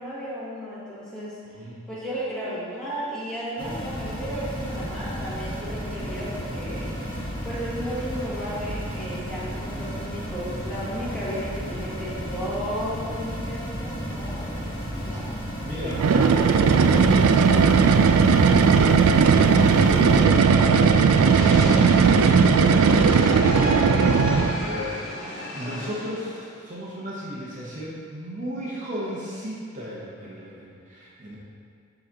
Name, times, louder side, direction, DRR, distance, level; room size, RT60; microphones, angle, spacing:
voice 1, 0.0-1.4 1.9-6.9 7.4-14.7 15.0-15.3, equal, 5° left, -10 dB, 1.6 m, -34 dB
voice 2, 1.5-1.8 15.1-15.3 15.6-17.8 18.1-22.3 24.6-25.0 25.5-31.4, equal, 35° right, -6 dB, 0.8 m, -35 dB
sound 1, 3.6-20.2, equal, 20° left, 1.1 m, -33 dB
sound 2, 15.9-24.7, right 5 dB, 80° right, 0.3 m, -17 dB
sound 3, 21.3-26.8, left 2 dB, 50° left, 1.2 m, -33 dB
11.0 x 3.9 x 2.9 m, 2.3 s
head